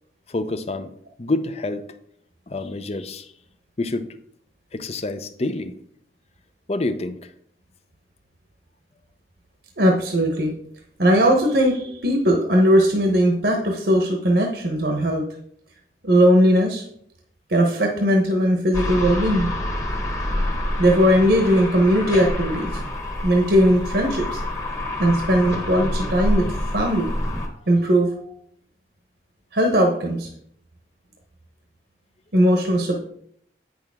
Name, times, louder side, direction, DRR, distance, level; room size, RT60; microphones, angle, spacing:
voice 1, 0.3-0.9 1.2-1.8 2.5-3.3 3.8-4.1 4.7-5.7 6.7-7.3, left 2 dB, 35° left, 10 dB, 0.6 m, -27 dB
voice 2, 9.8-10.6 11.0-15.2 16.0-16.8 17.5-19.5 20.8-22.8 23.2-24.4 25.0-27.1 27.7-28.3 29.5-30.3 32.3-33.0, equal, 65° right, 2 dB, 1.1 m, -19 dB
sound 1, 18.7-27.5, left 1 dB, 15° left, 1.2 m, -27 dB
8.9 x 6.4 x 3.6 m, 0.67 s
head